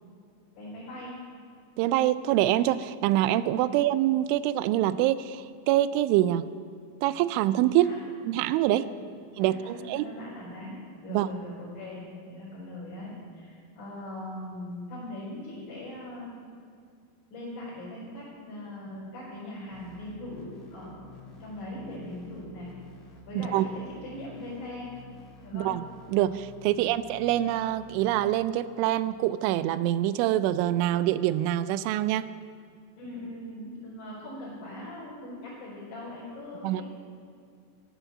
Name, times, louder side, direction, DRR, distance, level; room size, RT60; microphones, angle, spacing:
voice 1, 0.6-1.1 3.6-3.7 7.7-8.1 8.7-10.8 11.0-12.0 12.3-16.4 17.3-22.7 23.3-24.9 25.4-25.7 26.7-26.9 33.0-36.8, left 1 dB, 40° left, -10 dB, 5.5 m, -41 dB
voice 2, 1.8-6.5 7.0-7.9 8.3-8.9 9.4-10.1 11.1-11.3 23.4-23.7 25.5-25.8 26.1-32.3 36.6-36.8, right 13 dB, 85° right, 15 dB, 2.8 m, -25 dB
sound 1, 19.7-28.3, left 3 dB, 75° left, 1.0 m, -50 dB
15.5 x 11.0 x 7.2 m, 2.3 s
omnidirectional pair, 5.7 m